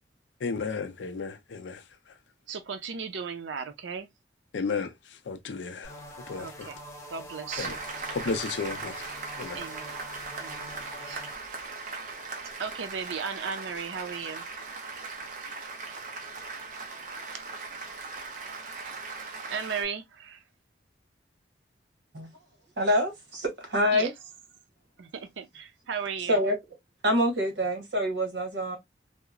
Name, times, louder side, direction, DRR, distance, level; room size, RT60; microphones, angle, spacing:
voice 1, 0.4-1.8 4.5-6.0 6.3-6.7 7.6-7.8 8.1-9.1 9.4-9.6, left 4 dB, 85° left, 0.5 m, -33 dB
voice 2, 2.5-4.1 6.4-6.8 7.1-7.8 9.5-10.0 10.4-11.3 12.6-14.4 18.8-19.1 19.5-20.4 23.9-24.1 25.0-26.4, right 6 dB, 90° right, 0.5 m, -36 dB
sound 1, 5.8-11.4, equal, 15° left, 0.5 m, -45 dB
Applause, 7.5-19.8, right 4 dB, 45° right, 0.6 m, -39 dB
voice 3, 22.8-24.1 26.3-26.6 27.0-28.8, equal, 70° right, 1.1 m, -26 dB
2.7 x 2.0 x 2.4 m
head